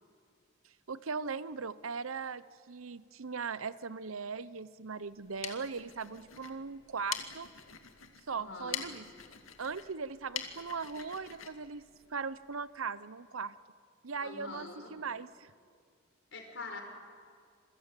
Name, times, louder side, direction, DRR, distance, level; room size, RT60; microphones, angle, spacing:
voice 1, 0.9-7.5 8.3-9.1 9.6-11.8 12.1-13.6 14.0-15.5, right 5 dB, 85° right, 16 dB, 0.8 m, -39 dB
sound 1, 5.1-12.6, left 9 dB, 80° left, 2.2 m, -45 dB
voice 2, 8.3-9.0 14.2-14.9 16.3-16.8, left 3 dB, 60° left, 4 dB, 5.2 m, -45 dB
27.0 x 22.0 x 9.0 m, 2.2 s
head